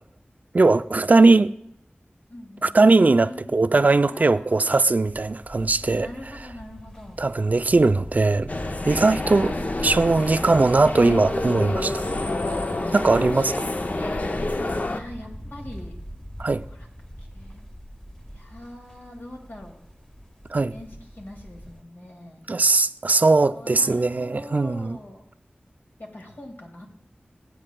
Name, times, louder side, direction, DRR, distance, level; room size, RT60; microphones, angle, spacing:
voice 1, 0.5-1.5 2.6-6.1 7.2-8.5 8.9-12.0 12.9-13.7 16.4-16.6 20.5-20.7 22.5-25.0, right 3 dB, 45° right, 0.3 m, -19 dB
voice 2, 2.3-2.7 3.0-4.7 6.0-7.2 14.9-15.9 16.7-16.9 17.2-17.6 18.3-19.8 20.7-22.5 23.5-25.3 26.0-26.9, left 1 dB, 65° left, 2.1 m, -43 dB
sound 1, 5.1-21.8, equal, 20° left, 1.2 m, -42 dB
sound 2, 8.5-15.0, left 2 dB, 45° left, 0.6 m, -28 dB
19.0 x 8.7 x 2.2 m
wide cardioid pair, 65°, 4 cm